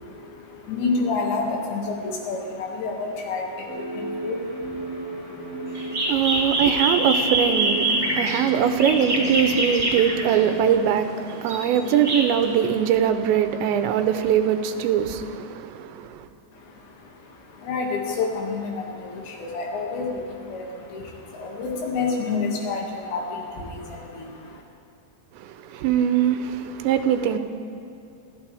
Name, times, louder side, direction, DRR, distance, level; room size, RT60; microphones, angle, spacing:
voice 1, 0.0-6.9 16.5-24.6, left 4 dB, 80° left, 4.5 m, -30 dB
sound 1, 3.7-10.8, right 1 dB, 15° left, 1.2 m, -33 dB
sound 2, 5.7-10.6 11.3-12.7, right 1 dB, 20° right, 1.8 m, -25 dB
voice 2, 6.1-16.3 25.4-27.4, right 9 dB, 85° right, 3.1 m, -22 dB
26.5 x 14.0 x 3.5 m
omnidirectional pair, 5.1 m